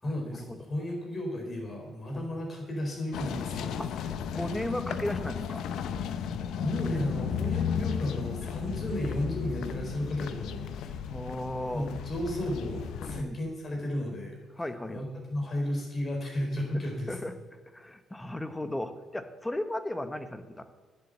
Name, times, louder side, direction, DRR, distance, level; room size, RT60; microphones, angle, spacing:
voice 1, 0.0-4.4 6.0-11.1 11.7-14.4 14.9-17.2, left 1 dB, 40° left, 1 dB, 4.6 m, -34 dB
sound 1, 3.1-13.2, left 7 dB, 75° left, 0.7 m, -34 dB
voice 2, 3.8-5.6 11.1-11.9 13.0-13.4 14.6-15.0 16.7-16.8 17.1-17.3 17.7-20.6, left 1 dB, 10° left, 10 dB, 1.0 m, -35 dB
10.0 x 7.9 x 7.7 m, 1.4 s
cardioid pair, 85°, 0 cm